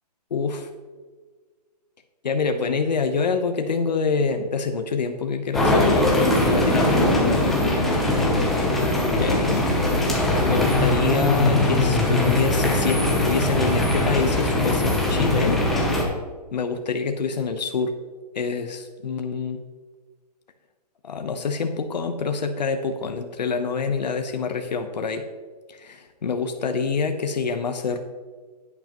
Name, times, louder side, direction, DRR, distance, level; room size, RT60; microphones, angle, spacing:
voice 1, 0.3-0.7 2.2-6.9 9.2-9.6 10.4-15.6 16.5-18.0 18.3-19.6 21.0-25.3 25.7-28.0, left 5 dB, 85° left, 6 dB, 1.0 m, -26 dB
sound 1, 5.5-16.0, left 1 dB, ahead, 0.7 m, -21 dB
11.0 x 9.9 x 3.0 m, 1.5 s
hypercardioid pair, 170°, 21 cm